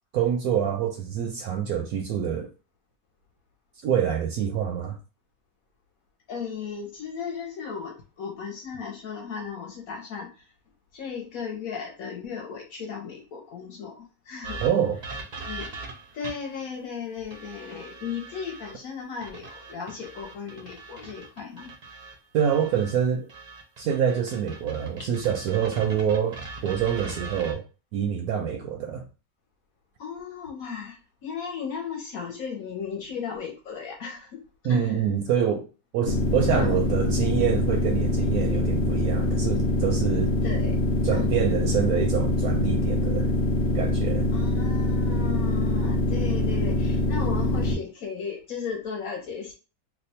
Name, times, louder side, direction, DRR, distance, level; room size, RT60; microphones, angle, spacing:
voice 1, 0.1-2.5 3.8-5.0 14.6-15.0 22.3-23.3 23.8-27.6 27.9-29.0 34.6-35.6 35.9-40.3 41.0-43.3 43.7-44.3, right 8 dB, 70° right, 0.9 m, -26 dB
voice 2, 6.3-10.4 10.9-14.0 14.2-14.6 15.4-15.7 16.1-21.7 30.0-35.0 36.5-36.8 40.4-40.8 41.1-41.3 44.3-49.5, left 6 dB, 60° left, 1.0 m, -36 dB
Playing with Guitar Cord, 14.4-16.6 17.3-18.7 19.2-22.9 23.3-27.5, right 3 dB, 55° right, 0.4 m, -41 dB
sound 1, 36.1-47.7, left 1 dB, 85° left, 0.6 m, -24 dB
2.9 x 2.2 x 4.1 m
omnidirectional pair, 1.9 m